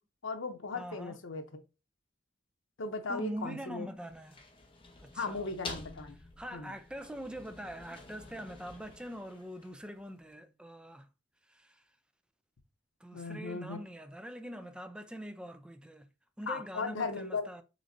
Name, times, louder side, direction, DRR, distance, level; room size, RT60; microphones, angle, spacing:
voice 1, 0.2-1.4 2.8-3.9 5.1-6.2 6.5-6.7 13.1-13.8 16.5-17.5, left 3 dB, 80° left, 0.8 m, -37 dB
voice 2, 0.7-1.2 3.1-4.5 5.0-5.5 6.4-11.1 11.5-11.8 13.0-16.1 16.4-17.6, equal, 5° right, 0.4 m, -43 dB
sound 1, 4.0-10.0, left 3 dB, 25° left, 0.9 m, -49 dB
6.2 x 3.2 x 2.6 m
head